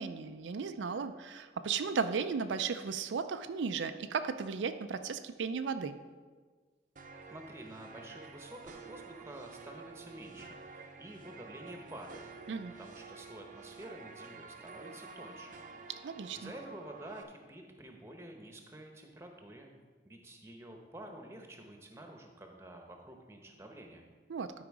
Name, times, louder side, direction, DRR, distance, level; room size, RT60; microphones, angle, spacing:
voice 1, 0.0-6.0 12.5-12.7 16.0-16.5 24.3-24.5, right 5 dB, 90° right, 9 dB, 0.4 m, -35 dB
sound 1, 7.0-17.2, right 4 dB, 45° right, 0.6 m, -50 dB
voice 2, 7.3-12.2 12.8-15.6 16.4-19.7 20.0-24.0, right 1 dB, 15° right, 3 dB, 0.9 m, -49 dB
12.0 x 4.8 x 4.8 m, 1.4 s
head